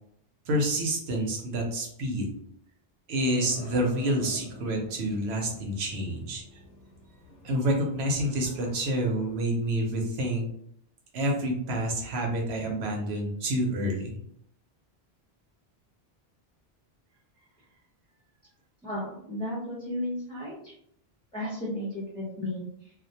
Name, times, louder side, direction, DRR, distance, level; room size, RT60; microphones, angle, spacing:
voice 1, 0.5-2.3 3.1-6.4 7.4-10.5 11.1-14.2, right 1 dB, 90° right, 1 dB, 0.9 m, -28 dB
sound 1, 3.1-9.4, left 3 dB, 55° left, 0.7 m, -48 dB
voice 2, 18.8-20.7 21.3-22.9, left 1 dB, 5° left, -8 dB, 0.5 m, -34 dB
2.3 x 2.1 x 2.6 m, 0.70 s
omnidirectional pair, 1.0 m